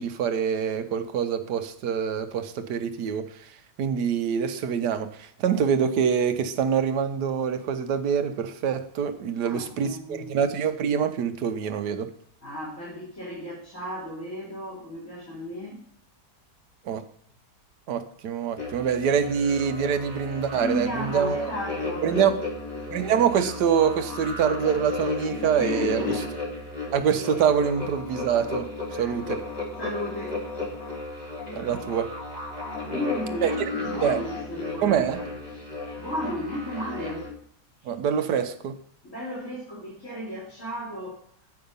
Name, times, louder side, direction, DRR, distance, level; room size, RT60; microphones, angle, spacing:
voice 1, 0.0-3.3 3.8-12.1 16.8-17.0 17.9-21.5 22.0-22.4 22.9-26.0 26.9-28.7 29.0-29.4 31.5-32.1 33.4-33.5 34.0-34.2 34.8-35.2 37.8-38.8, right 7 dB, 75° right, 1.4 m, -25 dB
voice 2, 9.4-10.3 12.4-15.8 20.5-22.2 25.6-26.2 28.9-29.2 29.8-30.4 32.8-35.4 36.0-37.3 39.0-41.2, left 1 dB, 45° left, 3.8 m, -34 dB
sound 1, 18.6-37.3, left 2 dB, 25° left, 2.1 m, -34 dB
8.7 x 5.8 x 5.3 m
omnidirectional pair, 1.8 m